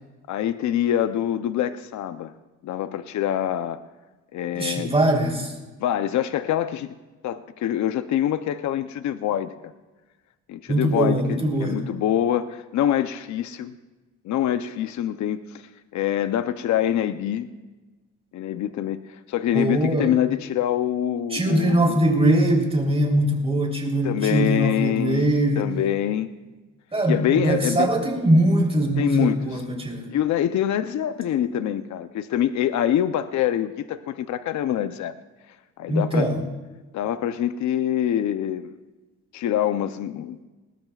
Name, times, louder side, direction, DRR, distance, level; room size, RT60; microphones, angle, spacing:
voice 1, 0.3-2.3 2.6-3.8 4.3-4.9 5.8-6.9 7.2-9.7 10.5-13.7 14.2-17.5 18.3-22.0 24.0-26.3 27.1-27.9 29.0-29.6 30.1-35.1 35.8-36.3 36.9-38.7 39.3-40.4, left 11 dB, 70° left, 11 dB, 0.7 m, -25 dB
voice 2, 4.5-5.5 10.7-11.8 19.5-20.1 21.3-25.6 26.9-30.1 35.9-36.4, right 1 dB, 20° right, 0 dB, 3.5 m, -21 dB
19.5 x 19.5 x 2.4 m, 1.2 s
cardioid pair, 90°, 30 cm